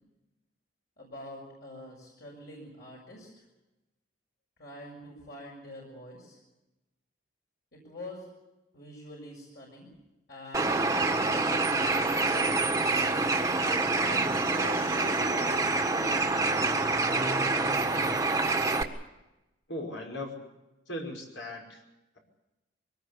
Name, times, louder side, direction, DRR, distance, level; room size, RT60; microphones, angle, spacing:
voice 1, 1.0-3.3 4.6-6.4 7.7-8.3 8.7-9.9 10.3-12.8 14.0-14.3 14.5-16.4, left 1 dB, 55° left, -2 dB, 6.5 m, -45 dB
Bird, 10.5-18.8, right 3 dB, 15° right, 1.5 m, -26 dB
voice 2, 19.7-20.5 20.9-21.8, left 1 dB, 75° left, 2 dB, 5.4 m, -38 dB
23.5 x 19.0 x 8.4 m, 0.99 s
head